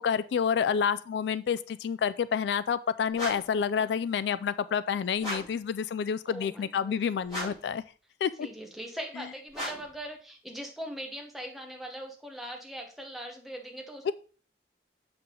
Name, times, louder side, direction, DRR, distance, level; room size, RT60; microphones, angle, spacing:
voice 1, 0.0-7.8 8.2-8.5 14.1-14.2, left 7 dB, 75° left, 16 dB, 0.3 m, -29 dB
sound 1, 3.1-3.6 5.2-5.6 7.2-7.7 9.5-10.0, equal, 25° left, 4.3 m, -37 dB
voice 2, 6.3-7.0 8.4-14.1, equal, ahead, 1 dB, 1.0 m, -41 dB
6.9 x 5.7 x 3.7 m, 0.39 s
head